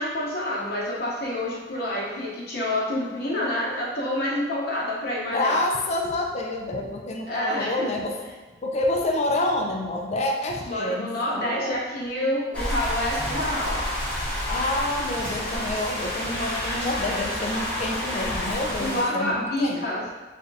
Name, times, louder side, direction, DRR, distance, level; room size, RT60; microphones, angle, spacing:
voice 1, 0.0-5.6 7.3-7.9 10.6-13.8 18.8-20.0, left 1 dB, 60° left, -5 dB, 1.0 m, -28 dB
voice 2, 5.3-8.2 8.6-11.1 11.3-11.8 14.5-20.0, left 1 dB, 35° left, 1 dB, 0.4 m, -28 dB
sound 1, 12.5-19.0, left 1 dB, 10° left, 1.1 m, -29 dB
3.4 x 2.3 x 4.0 m, 1.2 s
head